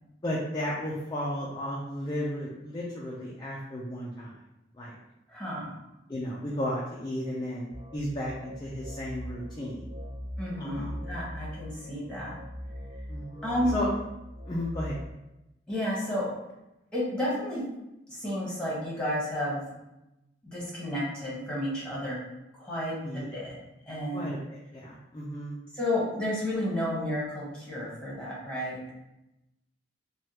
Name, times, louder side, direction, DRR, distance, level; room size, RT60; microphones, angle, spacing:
voice 1, 0.2-4.3 4.7-4.9 6.1-9.9 10.6-10.9 13.1-13.9 14.5-15.0 23.0-23.3 24.1-25.6, left 1 dB, 25° left, -5 dB, 0.4 m, -34 dB
voice 2, 5.3-5.7 10.4-12.4 13.4-13.7 15.7-16.3 16.9-17.6 18.1-19.7 20.4-22.2 22.6-23.5 23.9-24.3 25.7-28.9, left 1 dB, 5° left, -7 dB, 1.2 m, -31 dB
sound 1, 7.7-15.1, equal, 35° right, 0.6 m, -40 dB
3.2 x 2.3 x 2.8 m, 0.93 s
head